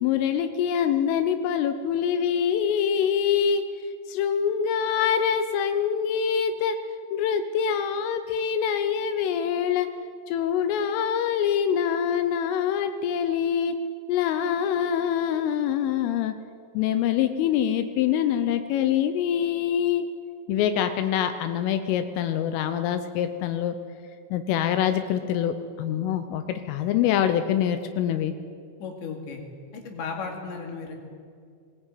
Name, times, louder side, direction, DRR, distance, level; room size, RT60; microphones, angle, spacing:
voice 1, 0.0-6.8 7.1-9.9 10.3-13.7 14.1-16.3 16.7-20.0 20.5-23.8 24.3-28.3, left 8 dB, 85° left, 9 dB, 3.4 m, -25 dB
voice 2, 28.8-29.4 29.7-30.9, left 5 dB, 65° left, 2 dB, 4.5 m, -35 dB
20.0 x 18.0 x 9.1 m, 2.2 s
omnidirectional pair, 5.7 m